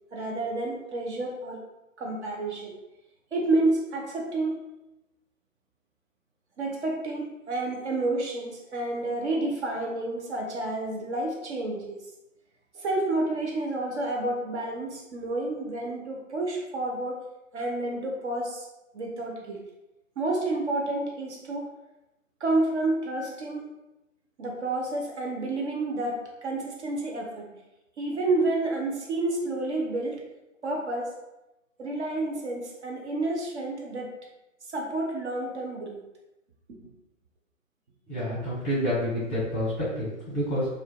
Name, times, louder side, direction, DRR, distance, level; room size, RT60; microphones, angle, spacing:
voice 1, 0.1-1.6 2.0-2.7 3.3-4.6 6.6-12.0 12.7-17.2 17.5-18.7 18.9-19.6 20.2-21.7 22.4-23.7 24.4-27.5 28.0-30.2 30.6-31.1 31.8-34.1 34.7-36.0, right 2 dB, 55° right, -1 dB, 0.5 m, -29 dB
voice 2, 38.1-40.7, equal, 15° left, -9 dB, 0.7 m, -28 dB
2.5 x 2.2 x 2.2 m, 0.96 s
figure-of-eight pair, 130°, 40 cm